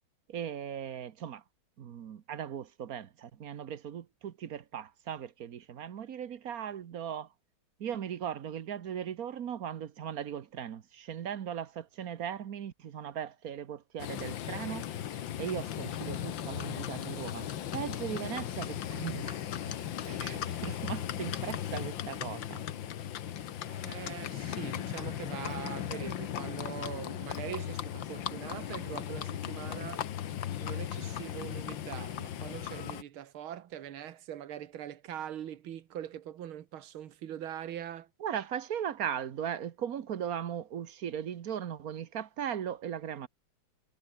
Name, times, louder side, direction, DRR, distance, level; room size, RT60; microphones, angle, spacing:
voice 1, 0.3-1.4 1.8-7.3 7.8-14.9 15.4-19.7 20.1-22.6 38.2-43.3, right 9 dB, 50° right, 1.3 m, -38 dB
Livestock farm animals working animals, 14.0-33.0, left 10 dB, 70° left, 1.8 m, -37 dB
voice 2, 23.6-30.1 30.6-38.1, right 10 dB, 85° right, 2.1 m, -42 dB
omnidirectional pair, 2.2 m